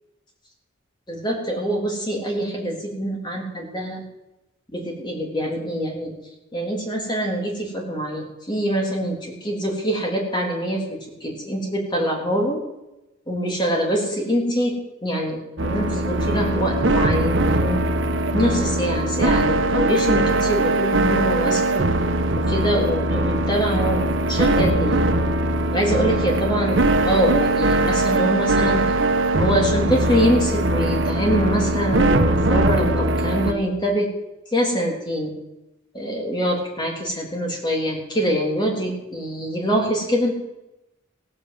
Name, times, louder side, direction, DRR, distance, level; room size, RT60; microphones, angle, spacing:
voice 1, 1.1-4.0 4.7-6.1 6.5-12.6 13.3-14.8 15.0-17.8 18.3-21.9 22.3-25.1 25.7-28.8 29.4-34.1 34.5-35.3 35.9-40.3, equal, 25° left, -1 dB, 3.5 m, -24 dB
sound 1, 15.6-33.5, right 1 dB, 70° right, 1.3 m, -21 dB
16.5 x 8.3 x 7.8 m, 0.94 s
head